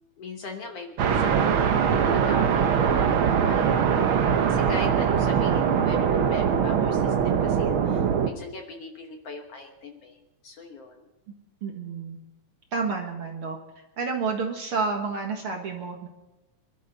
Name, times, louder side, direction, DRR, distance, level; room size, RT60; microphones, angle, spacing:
voice 1, 0.2-3.8 4.1-10.2 10.4-11.0, left 3 dB, 60° left, 3 dB, 1.9 m, -40 dB
sound 1, 1.0-8.3, right 7 dB, 80° right, 1.1 m, -22 dB
voice 2, 11.6-12.2 12.7-13.6 14.0-16.1, right 4 dB, 50° right, 2 dB, 2.0 m, -30 dB
26.5 x 12.5 x 4.1 m, 1.0 s
omnidirectional pair, 3.8 m